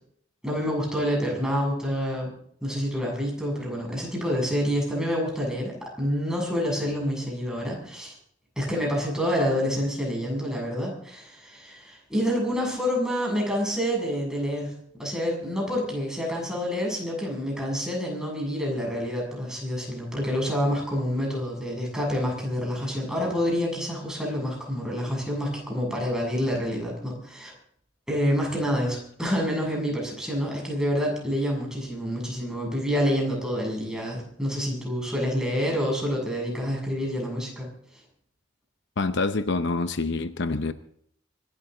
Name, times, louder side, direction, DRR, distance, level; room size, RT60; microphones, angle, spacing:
voice 1, 0.4-2.3 2.6-8.1 8.6-14.7 15.0-27.5 28.1-37.7, equal, 5° right, 7.0 m, -27 dB
voice 2, 39.0-40.7, left 3 dB, 60° left, 0.8 m, -26 dB
25.0 x 13.0 x 3.9 m
head